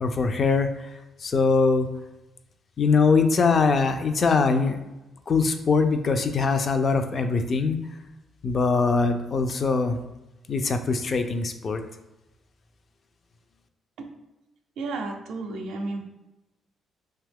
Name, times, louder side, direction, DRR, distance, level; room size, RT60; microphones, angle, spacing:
voice 1, 0.0-0.9 1.2-1.9 2.8-4.8 5.3-7.8 8.4-10.0 10.5-11.8, left 4 dB, 45° left, 7 dB, 0.3 m, -22 dB
voice 2, 14.8-16.0, right 3 dB, 80° right, 3 dB, 0.5 m, -32 dB
2.8 x 2.3 x 3.4 m, 1.0 s
cardioid pair, 90°, 0 cm